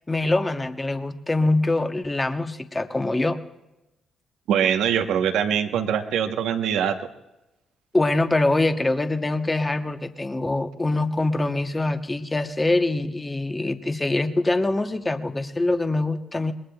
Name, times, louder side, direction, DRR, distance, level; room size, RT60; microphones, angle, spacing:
voice 1, 0.1-3.4 7.9-16.5, left 2 dB, 20° left, 8 dB, 0.9 m, -24 dB
voice 2, 4.5-7.0, right 8 dB, 85° right, 7 dB, 1.0 m, -23 dB
27.0 x 20.5 x 2.3 m, 0.95 s
cardioid pair, 90°, 0 cm